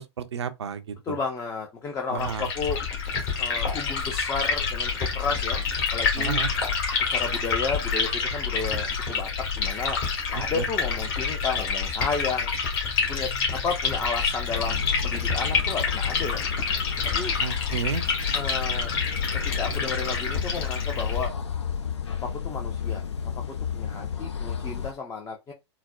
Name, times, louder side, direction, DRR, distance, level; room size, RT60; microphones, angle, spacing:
voice 1, 0.0-1.2 2.1-2.5 6.2-6.5 10.3-10.7 17.4-18.0, right 7 dB, 70° right, 0.5 m, -32 dB
voice 2, 1.1-2.8 3.4-5.6 5.9-6.4 7.0-9.3 9.6-10.0 10.3-12.5 13.1-16.4 17.1-17.3 18.3-18.9 19.6-21.3 22.4-23.0 23.5-25.5, left 4 dB, 20° left, 0.5 m, -32 dB
Liquid, 2.2-21.3, left 5 dB, 50° left, 1.4 m, -27 dB
sound 1, 14.5-24.9, left 7 dB, 75° left, 0.6 m, -32 dB
4.0 x 2.1 x 2.3 m
figure-of-eight pair, 105°, 15 cm